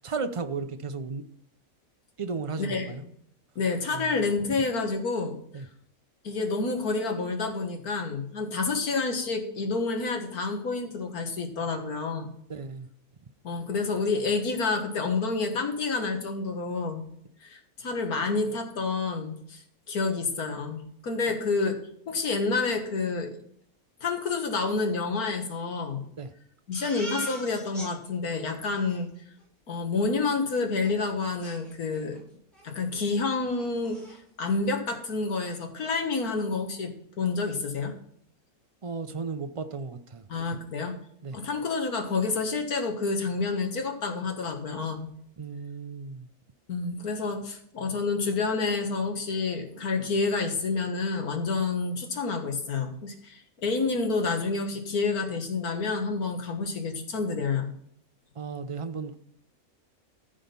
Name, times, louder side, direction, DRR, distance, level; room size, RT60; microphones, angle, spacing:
voice 1, 0.0-1.2 2.2-3.0 3.9-4.0 5.5-5.6 12.5-12.9 26.2-26.3 38.8-40.2 41.2-41.4 45.4-46.3 58.4-59.2, right 4 dB, 40° right, 9 dB, 0.4 m, -34 dB
voice 2, 2.6-3.1 3.6-5.4 6.2-12.3 13.4-17.1 17.4-19.6 19.9-21.8 22.1-23.4 24.0-26.0 26.7-29.1 29.7-32.2 32.6-34.0 34.4-37.9 40.3-40.9 41.3-45.1 46.7-57.7, left 4 dB, 80° left, 4 dB, 2.1 m, -29 dB
Crying sobbing, 26.7-27.9 28.3-28.4 28.6-29.0 30.8-30.9 31.4-32.2 32.5-32.7 33.1-33.2 33.5-34.2, right 1 dB, ahead, 5.5 m, -41 dB
14.5 x 5.0 x 5.4 m, 0.66 s
omnidirectional pair, 1.6 m